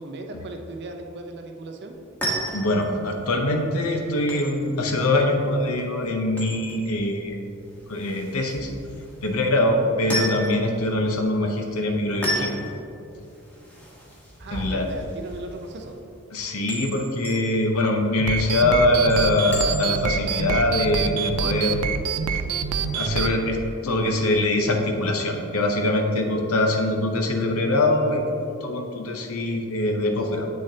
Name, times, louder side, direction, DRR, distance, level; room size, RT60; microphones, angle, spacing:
voice 1, 0.0-2.0 14.4-16.0, right 2 dB, 50° right, 4 dB, 0.6 m, -37 dB
sound 1, 1.9-20.2, equal, 5° left, 1.2 m, -35 dB
voice 2, 2.5-7.4 7.9-8.7 9.2-12.5 14.5-14.9 16.3-21.8 22.9-30.5, left 1 dB, 70° left, 3 dB, 0.8 m, -23 dB
sound 2, 18.2-23.3, right 6 dB, 90° right, 0.4 m, -26 dB
8.4 x 6.4 x 2.8 m, 2.8 s
head